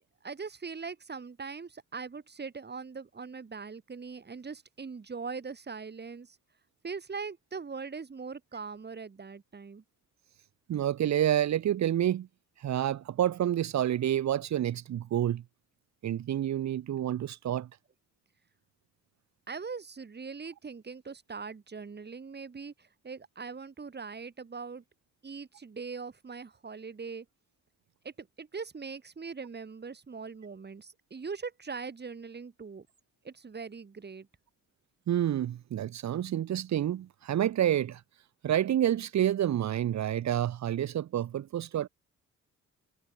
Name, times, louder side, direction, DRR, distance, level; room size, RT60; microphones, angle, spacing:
voice 1, 0.2-6.4 6.8-9.8 19.5-24.8 25.2-27.3 28.0-32.9 33.2-34.3, right 5 dB, 35° right, 7.3 m, -41 dB
voice 2, 10.7-12.3 12.6-15.4 16.0-17.7 35.1-38.0 38.4-41.9, right 11 dB, 65° right, 1.9 m, -28 dB
cardioid pair, 90°, 30 cm